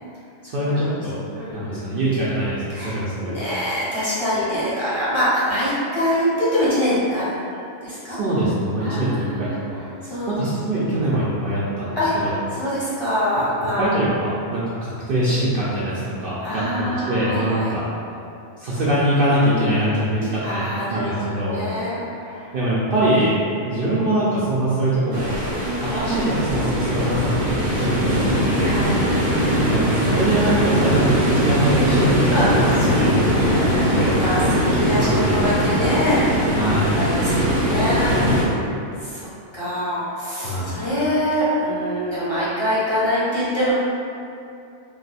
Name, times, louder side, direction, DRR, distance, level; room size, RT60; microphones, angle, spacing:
voice 1, 0.5-1.2 1.5-3.4 8.0-9.8 10.3-12.3 13.8-16.6 17.1-17.8 18.6-21.6 22.5-23.4 23.6-25.4 25.8-28.6 29.7-34.1 34.9-35.6 36.5-37.0 40.4-40.7, right 1 dB, 60° right, -8 dB, 0.6 m, -23 dB
voice 2, 1.3-2.0 2.7-7.3 7.8-8.2 8.8-10.3 11.9-14.0 14.3-14.6 16.4-17.7 20.4-22.5 25.6-25.7 28.6-29.0 32.3-33.0 33.4-34.4 34.7-36.4 36.9-38.5 39.0-43.7, equal, 25° left, -12 dB, 0.8 m, -24 dB
sound 1, 25.1-38.4, equal, 90° right, 1.1 m, -20 dB
2.4 x 2.4 x 4.0 m, 2.6 s
omnidirectional pair, 1.2 m